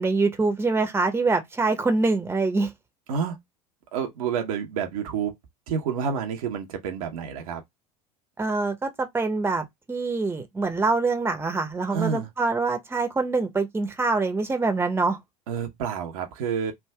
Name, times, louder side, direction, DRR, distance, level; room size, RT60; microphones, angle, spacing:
voice 1, 0.0-2.7 8.4-15.2, right 3 dB, 10° right, 1.0 m, -25 dB
voice 2, 3.9-5.3 5.7-7.6 11.9-12.3 15.5-16.7, right 7 dB, 65° right, 0.9 m, -29 dB
3.5 x 2.5 x 3.4 m
figure-of-eight pair, 75°, 20 cm